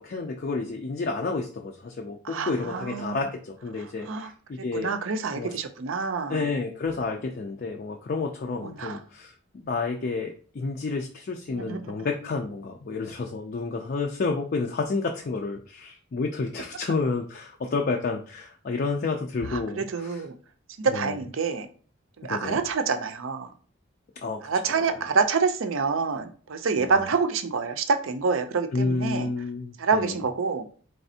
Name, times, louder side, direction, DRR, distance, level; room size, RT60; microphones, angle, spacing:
voice 1, 0.0-4.9 5.4-5.6 6.3-20.2 20.9-21.2 22.3-22.6 24.2-24.4 24.8-25.0 26.8-27.0 28.7-30.2, left 3 dB, 45° left, 3 dB, 0.4 m, -30 dB
voice 2, 2.2-3.3 4.0-4.3 4.7-6.5 8.6-9.0 11.5-11.9 19.5-20.4 20.8-21.7 22.2-23.5 24.4-29.3 29.8-30.7, right 5 dB, 70° right, 8 dB, 0.5 m, -27 dB
4.1 x 3.3 x 2.7 m, 0.43 s
head